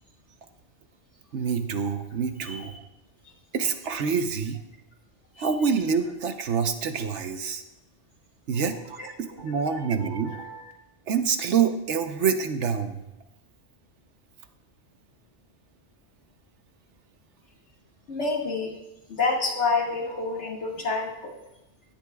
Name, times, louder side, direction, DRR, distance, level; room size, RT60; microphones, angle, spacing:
voice 1, 1.3-2.7 3.5-4.6 5.4-7.6 8.5-10.3 11.1-13.0, right 6 dB, 75° right, 8 dB, 1.2 m, -26 dB
voice 2, 2.4-2.8 5.4-5.5 9.0-10.7 18.1-18.7 19.1-21.4, left 3 dB, 75° left, -1 dB, 2.3 m, -30 dB
16.5 x 11.5 x 2.4 m, 0.95 s
omnidirectional pair, 1.2 m